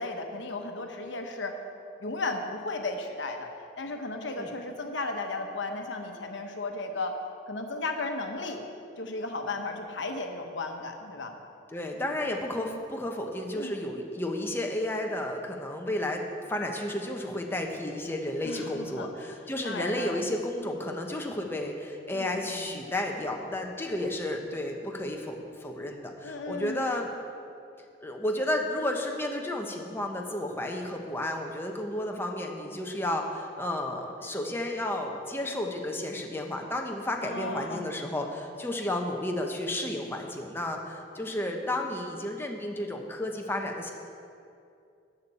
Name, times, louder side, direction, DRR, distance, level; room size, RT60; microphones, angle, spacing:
voice 1, 0.0-1.6 2.0-3.5 3.8-7.2 7.5-8.6 9.0-11.4 13.5-13.7 18.4-19.3 19.6-20.2 22.1-22.8 26.2-26.9 37.2-37.9, left 2 dB, 70° left, 4 dB, 1.0 m, -35 dB
voice 2, 11.7-27.1 28.0-43.9, left 1 dB, 10° left, 2 dB, 0.9 m, -32 dB
12.5 x 8.2 x 4.2 m, 2.5 s
head